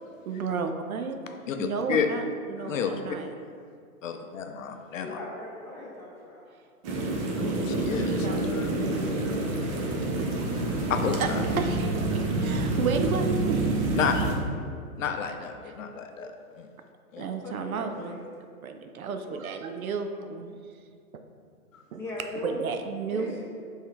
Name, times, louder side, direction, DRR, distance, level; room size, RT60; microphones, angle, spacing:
voice 1, 0.0-3.3 7.0-7.1 7.4-9.5 11.2-13.9 15.6-16.3 17.2-18.2 18.6-20.6 21.9-22.0 22.4-23.4, right 5 dB, 70° right, 6 dB, 0.7 m, -33 dB
voice 2, 1.5-2.1 2.6-3.0 3.4-3.5 4.0-5.2 7.7-8.3 8.5-8.7 10.9-11.4 13.9-14.3 15.0-16.7 17.1-17.3 21.7-21.8, left 7 dB, 60° left, 6 dB, 0.6 m, -31 dB
voice 3, 4.9-6.4 17.1-18.2 19.2-19.7 21.9-22.8 23.1-23.4, left 2 dB, 5° left, -7 dB, 1.2 m, -40 dB
sound 1, 6.8-14.4, right 2 dB, 25° right, 0.5 m, -28 dB
5.5 x 3.6 x 4.6 m, 2.2 s
hypercardioid pair, 130°, 44 cm